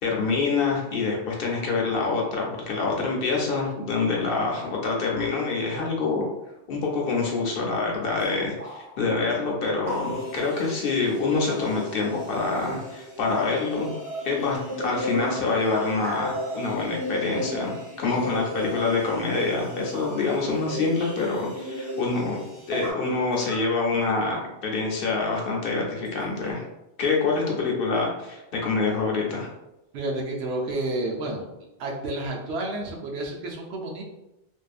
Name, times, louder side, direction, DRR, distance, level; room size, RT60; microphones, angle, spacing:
voice 1, 0.0-6.3 6.7-14.0 14.2-22.4 22.7-26.6 27.0-29.5, left 4 dB, 65° left, -1 dB, 0.7 m, -26 dB
sound 1, 8.2-8.3 8.6-9.2 9.6-11.1 15.0-16.5 18.0-18.5 18.8-20.6 21.0-21.4 22.5-24.5 25.3-26.5, equal, 40° right, 0.5 m, -42 dB
sound 2, 9.8-22.9, equal, 25° right, 0.9 m, -35 dB
voice 2, 29.9-31.4 31.8-34.0, right 2 dB, 85° right, -1 dB, 0.9 m, -30 dB
2.6 x 2.3 x 2.3 m, 0.92 s
omnidirectional pair, 1.1 m